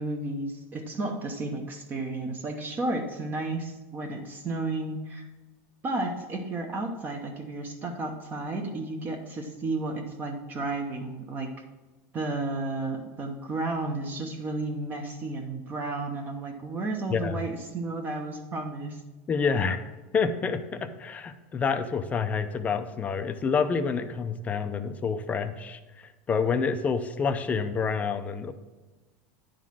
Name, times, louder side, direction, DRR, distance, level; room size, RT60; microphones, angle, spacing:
voice 1, 0.0-5.3 5.8-11.5 12.1-19.0, right 2 dB, 25° right, 4 dB, 0.7 m, -32 dB
voice 2, 17.1-17.4 19.3-28.5, left 5 dB, 20° left, 10 dB, 0.4 m, -28 dB
10.0 x 3.8 x 6.2 m, 1.2 s
supercardioid pair, 145°, 8 cm